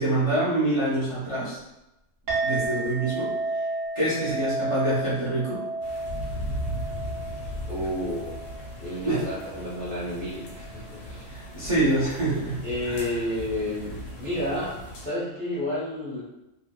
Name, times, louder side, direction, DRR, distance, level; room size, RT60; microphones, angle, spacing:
voice 1, 0.0-1.6 2.4-3.3 3.9-5.6 9.0-9.2 11.3-13.1, right 1 dB, 30° right, -9 dB, 0.7 m, -26 dB
Chink clink, 2.3-11.0, right 2 dB, 80° right, 1.2 m, -33 dB
sound 1, 5.8-15.1, equal, 85° left, 1.0 m, -37 dB
voice 2, 7.7-8.4 8.8-11.3 12.6-16.2, left 1 dB, 10° left, -9 dB, 0.5 m, -31 dB
2.8 x 2.1 x 2.2 m, 0.92 s
omnidirectional pair, 1.3 m